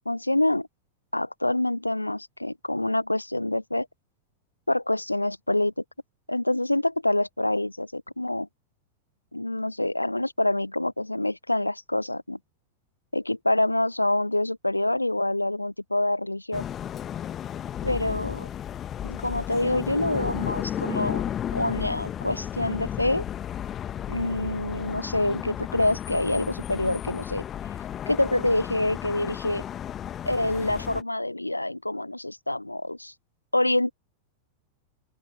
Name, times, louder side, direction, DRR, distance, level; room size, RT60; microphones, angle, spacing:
voice 1, 0.1-0.7 1.1-3.9 4.7-5.7 6.3-8.5 9.3-12.4 13.1-16.6 17.8-18.5 19.0-21.2 21.5-23.2 24.1-27.4 28.1-29.6 30.2-33.1 33.5-33.9, left 1 dB, 85° left, 0.6 m, -26 dB
sound 1, 16.5-31.0, left 10 dB, 25° left, 1.6 m, -33 dB
open air
figure-of-eight pair, 90°, 0 cm